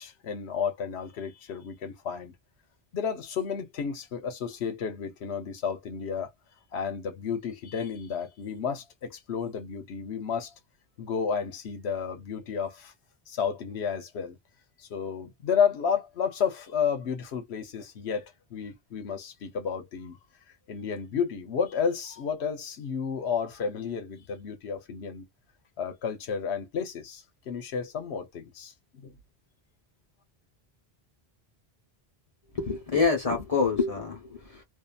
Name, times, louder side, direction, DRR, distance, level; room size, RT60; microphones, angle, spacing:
voice 1, 0.0-2.3 2.9-6.3 6.7-10.5 11.0-12.9 13.3-14.3 14.8-20.2 20.7-25.3 25.8-29.1, left 6 dB, 85° left, 1.0 m, -32 dB
voice 2, 32.5-34.6, left 4 dB, 35° left, 1.0 m, -26 dB
2.7 x 2.5 x 2.3 m
omnidirectional pair, 1.1 m